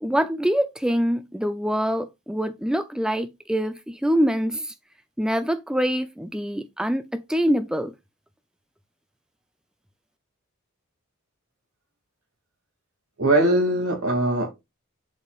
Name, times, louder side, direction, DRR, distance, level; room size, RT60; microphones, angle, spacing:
voice 1, 0.0-4.7 5.2-7.9, equal, 5° right, 0.4 m, -25 dB
voice 2, 13.2-14.5, right 1 dB, 75° right, 2.3 m, -21 dB
11.5 x 4.2 x 2.4 m
head